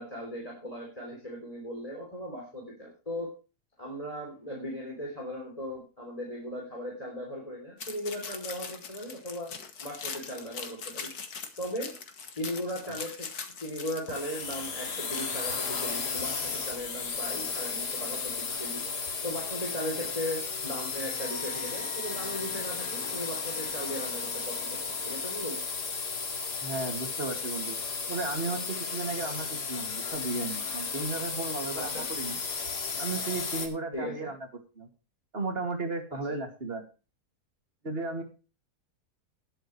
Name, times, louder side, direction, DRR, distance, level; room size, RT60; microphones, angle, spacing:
voice 1, 0.0-3.3 3.8-9.5 9.8-11.1 11.6-11.9 12.3-13.3 13.6-24.8 25.1-25.6 31.7-32.1 33.9-34.3, equal, 20° left, -1 dB, 3.3 m, -37 dB
sound 1, 7.8-15.3, left 6 dB, 70° left, 2.1 m, -41 dB
sound 2, 14.1-33.7, left 5 dB, 85° left, 2.5 m, -34 dB
Wind instrument woodwind instrument, 21.2-25.6, left 1 dB, 80° right, 2.0 m, -47 dB
voice 2, 26.6-27.8 28.1-32.4 33.0-34.4 34.8-34.9 35.3-36.9 37.8-38.2, right 3 dB, 35° right, 5 dB, 2.6 m, -34 dB
19.0 x 7.9 x 3.2 m, 0.33 s
omnidirectional pair, 1.7 m